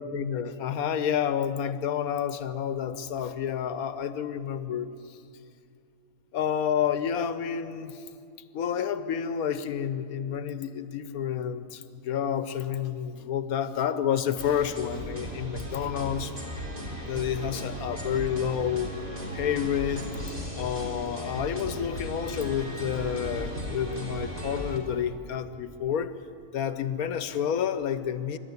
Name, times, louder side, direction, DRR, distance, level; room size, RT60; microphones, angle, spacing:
voice 1, 0.0-5.2 6.3-8.0 8.5-16.3 17.1-18.9 19.3-20.0 20.6-26.1 26.5-28.4, left 8 dB, 85° left, 12 dB, 1.3 m, -29 dB
sound 1, 14.4-24.8, equal, 25° right, 3.2 m, -36 dB
25.0 x 12.5 x 9.6 m, 2.5 s
omnidirectional pair, 1.5 m